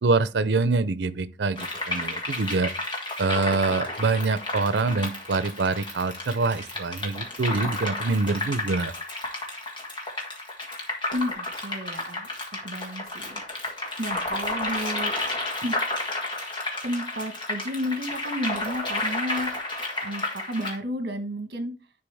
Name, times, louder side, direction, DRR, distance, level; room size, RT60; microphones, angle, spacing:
voice 1, 0.0-2.7 3.2-8.9, right 3 dB, 85° right, 0.6 m, -25 dB
sound 1, 1.6-20.8, left 2 dB, 25° left, 1.7 m, -32 dB
voice 2, 11.1-12.3 12.6-13.4 14.0-15.1 15.6-15.8 16.8-19.5 20.0-21.7, equal, 65° right, 1.4 m, -32 dB
10.5 x 4.5 x 3.4 m
head